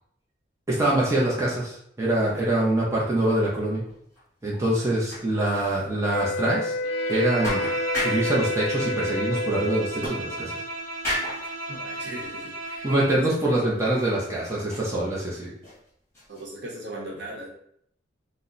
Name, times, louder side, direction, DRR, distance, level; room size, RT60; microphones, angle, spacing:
voice 1, 0.7-3.8 4.4-6.7 7.1-7.6 7.9-10.5 12.8-15.5, right 1 dB, 15° right, -5 dB, 0.6 m, -24 dB
sound 1, 3.8-4.2 4.5-4.6 5.1-5.3 5.7-5.8 6.3-6.4 7.1-7.2 7.4-8.4 10.0-10.7 11.0-11.5 12.2-12.3 12.8-12.9 13.7-14.2 14.5-15.8 16.1-16.4, left 1 dB, 15° left, 1.3 m, -33 dB
sound 2, 6.1-10.0, left 1 dB, 70° left, 0.4 m, -29 dB
Bowed string instrument, 6.8-13.2, right 2 dB, 85° right, 0.7 m, -34 dB
voice 2, 11.7-12.9 16.3-17.5, right 1 dB, 60° right, -3 dB, 0.8 m, -38 dB
2.8 x 2.0 x 3.8 m, 0.69 s
head